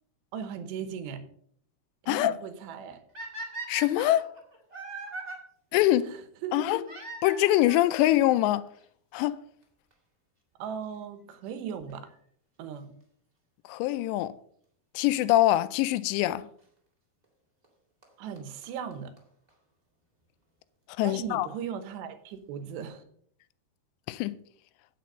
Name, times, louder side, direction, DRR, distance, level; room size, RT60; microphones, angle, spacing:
voice 1, 0.3-1.2 2.0-3.0 6.1-6.7 10.6-12.0 12.6-12.9 18.2-19.1 21.0-23.0, right 8 dB, 80° right, 3.2 m, -37 dB
sound 1, 3.1-5.4 6.8-7.9 8.8-8.9 9.6-9.7 9.9-10.0 11.9-12.1 15.0-15.1 16.1-16.2 17.6-17.7 18.0-18.1 18.3-18.4 18.6-18.7 18.9-19.0 19.2-19.3 19.5-19.6, right 2 dB, 40° right, 0.5 m, -40 dB
voice 2, 3.7-4.3 5.7-6.1 6.5-6.8 7.2-8.7 9.1-9.4 13.7-14.3 15.0-16.5 21.0-21.5 24.1-24.3, left 15 dB, 85° left, 2.7 m, -24 dB
9.2 x 8.5 x 5.3 m
omnidirectional pair, 5.0 m